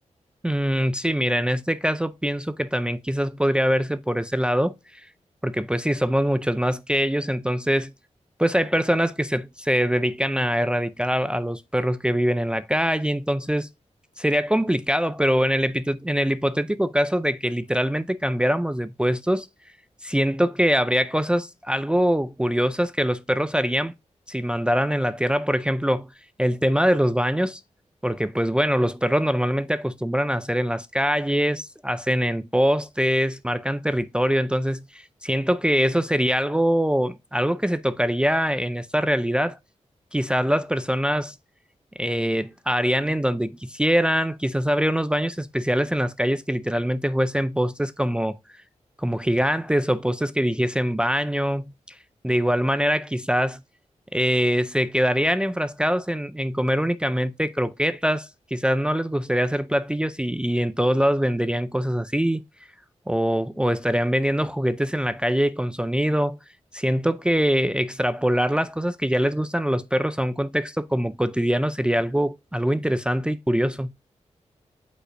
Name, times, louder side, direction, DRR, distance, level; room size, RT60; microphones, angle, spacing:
voice 1, 0.4-5.0 5.4-7.9 8.4-13.7 14.2-19.5 20.0-23.9 24.3-26.1 26.4-27.6 28.0-39.6 40.1-41.3 42.0-48.4 49.0-52.0 52.2-53.6 54.1-62.4 63.1-66.4 66.7-73.9, equal, 10° right, 0.4 m, -23 dB
8.3 x 5.2 x 2.5 m
wide cardioid pair, 115°, 12 cm